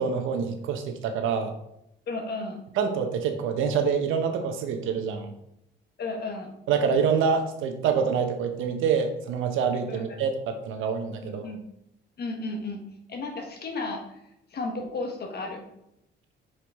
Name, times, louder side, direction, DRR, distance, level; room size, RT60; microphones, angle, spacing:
voice 1, 0.0-1.5 2.8-5.3 6.7-11.5, right 6 dB, 90° right, 6 dB, 0.8 m, -26 dB
voice 2, 2.1-2.6 6.0-6.5 9.9-10.2 11.2-11.6 12.2-12.8 13.1-14.2 14.5-15.6, left 3 dB, 55° left, 3 dB, 1.3 m, -33 dB
5.8 x 4.7 x 3.5 m, 0.82 s
cardioid pair, 90°, 20 cm